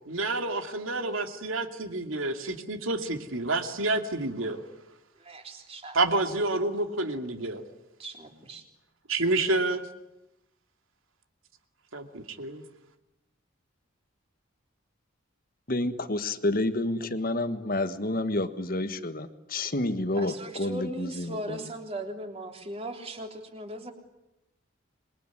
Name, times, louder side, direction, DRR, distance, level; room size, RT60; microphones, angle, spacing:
voice 1, 0.1-4.6 5.9-7.6 9.1-9.9 11.9-12.6, right 2 dB, 75° right, 6 dB, 2.5 m, -29 dB
voice 2, 5.2-6.0 8.0-8.6 20.1-23.9, right 1 dB, 30° right, 4 dB, 3.5 m, -38 dB
voice 3, 15.7-19.3 19.5-20.3 20.6-20.8, left 2 dB, 45° left, 10 dB, 1.5 m, -28 dB
27.0 x 22.0 x 9.8 m, 0.92 s
head